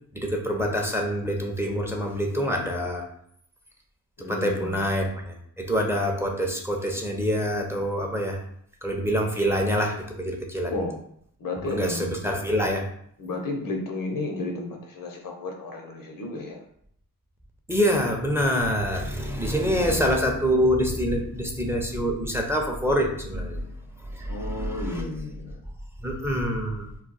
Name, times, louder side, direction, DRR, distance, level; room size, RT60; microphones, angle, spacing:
voice 1, 0.1-3.1 4.3-8.4 8.8-10.9 11.7-12.9 17.7-23.7 24.1-25.0 26.0-26.9, equal, 5° right, 1 dB, 0.6 m, -26 dB
voice 2, 4.2-4.7 10.7-11.0 11.4-12.1 13.2-16.6 19.8-20.1 24.3-25.6, left 2 dB, 60° left, 2 dB, 0.7 m, -32 dB
2.3 x 2.2 x 3.9 m, 0.68 s
cardioid pair, 45°, 38 cm